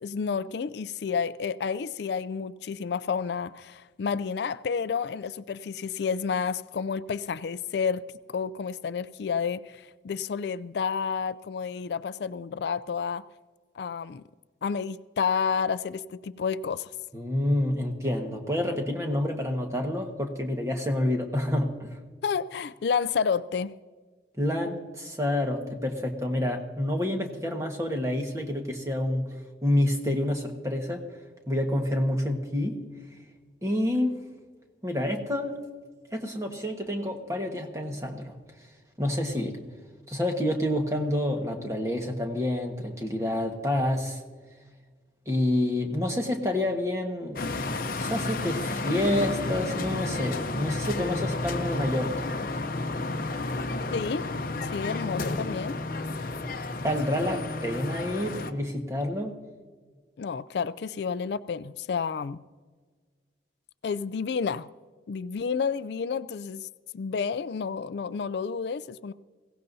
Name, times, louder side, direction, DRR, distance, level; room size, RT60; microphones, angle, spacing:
voice 1, 0.0-13.2 13.8-14.2 14.6-16.9 22.2-23.7 53.9-54.3 54.7-55.8 60.2-62.4 63.8-64.7 65.1-66.7 66.9-69.1, left 6 dB, 70° left, 0.4 m, -30 dB
voice 2, 17.1-22.0 24.4-29.3 29.6-31.0 31.5-32.8 33.6-34.2 34.8-35.5 36.1-38.3 39.0-39.6 40.1-44.2 45.3-52.3 56.8-59.4, left 1 dB, 15° right, 1.4 m, -28 dB
sound 1, 47.4-58.5, left 2 dB, 50° left, 0.8 m, -31 dB
22.0 x 16.5 x 2.7 m
head